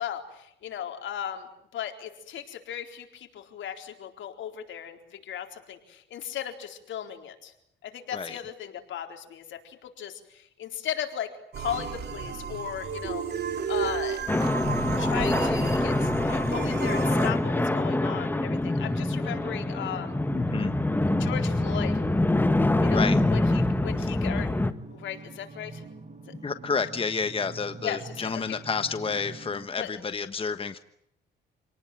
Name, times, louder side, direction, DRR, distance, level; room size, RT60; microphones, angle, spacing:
voice 1, 0.0-7.5 7.8-13.2 13.7-14.3 15.0-20.2 21.2-22.0 22.8-24.5 24.9-25.8 27.8-28.6 29.8-29.9, left 9 dB, 75° left, 4 dB, 4.2 m, -36 dB
sound 1, 11.5-17.3, right 7 dB, 55° right, 3.3 m, -33 dB
sound 2, 14.3-24.7, left 2 dB, 10° left, 1.5 m, -25 dB
sound 3, 17.1-29.7, right 3 dB, 35° right, 7.3 m, -45 dB
voice 2, 20.3-20.8 22.9-23.2 26.4-30.8, left 5 dB, 25° left, 10 dB, 1.2 m, -30 dB
28.0 x 19.0 x 9.3 m, 0.76 s
cardioid pair, 90°, 20 cm